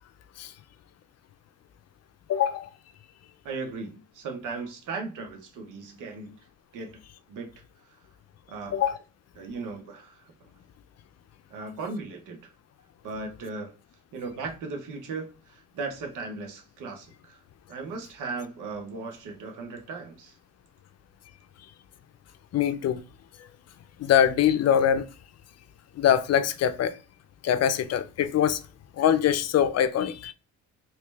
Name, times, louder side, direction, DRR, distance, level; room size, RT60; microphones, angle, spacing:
voice 1, 2.3-2.7 8.7-9.0 22.5-23.0 24.0-25.1 26.0-26.9 27.4-28.6 29.0-30.3, left 9 dB, 55° left, 0.5 m, -23 dB
voice 2, 3.4-6.4 6.7-7.0 7.3-7.5 8.5-8.8 9.4-10.2 11.5-12.4 13.0-13.7 14.1-17.4 17.7-20.3, right 4 dB, 85° right, 1.2 m, -37 dB
3.1 x 3.1 x 3.3 m
cardioid pair, 90°, 30 cm